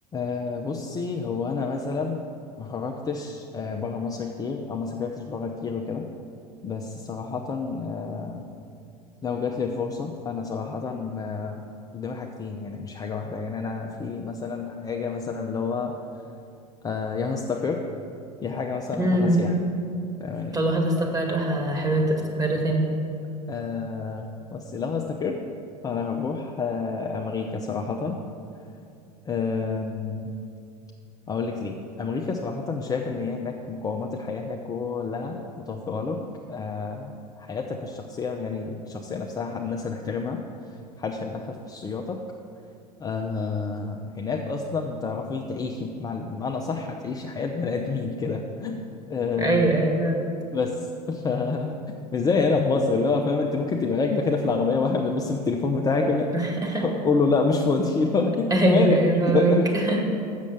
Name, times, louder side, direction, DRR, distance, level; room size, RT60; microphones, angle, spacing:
voice 1, 0.1-2.3 2.6-6.1 6.6-8.5 9.2-11.6 11.9-15.9 16.8-17.8 18.4-19.5 20.2-20.6 23.5-25.4 25.8-28.2 29.3-30.3 31.3-36.2 36.5-37.1 37.4-40.4 41.0-42.2 43.0-48.8 49.1-49.8 50.5-50.8 51.1-51.8 52.1-56.3 56.8-59.7, left 4 dB, 15° left, 1 dB, 0.5 m, -28 dB
voice 2, 19.0-19.4 20.5-22.8 49.4-50.3 56.3-56.9 58.5-60.0, right 2 dB, 15° right, 1 dB, 1.7 m, -22 dB
7.2 x 6.6 x 7.1 m, 2.5 s
figure-of-eight pair, 80°, 21 cm